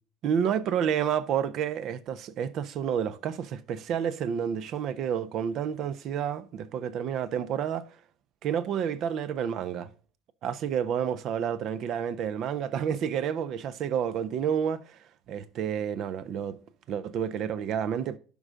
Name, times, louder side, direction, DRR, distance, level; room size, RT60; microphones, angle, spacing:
voice 1, 0.2-7.8 8.4-9.9 10.4-15.0 15.3-16.6 16.9-18.2, right 8 dB, 50° right, 0.7 m, -30 dB
11.0 x 5.4 x 3.7 m
hypercardioid pair, 70°, 0 cm